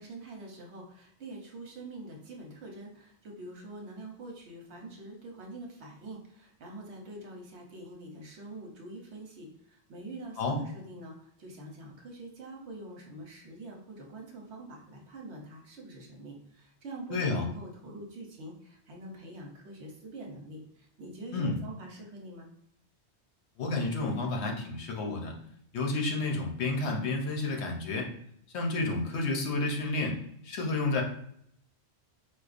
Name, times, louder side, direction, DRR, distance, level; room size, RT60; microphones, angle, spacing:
voice 1, 0.0-22.5, right 2 dB, 80° right, 1 dB, 1.1 m, -45 dB
voice 2, 17.1-17.5 21.3-21.6 23.6-25.4 25.7-28.1 28.5-30.2 30.4-31.0, left 3 dB, 75° left, 1 dB, 1.0 m, -30 dB
4.3 x 2.4 x 2.4 m, 0.70 s
omnidirectional pair, 1.1 m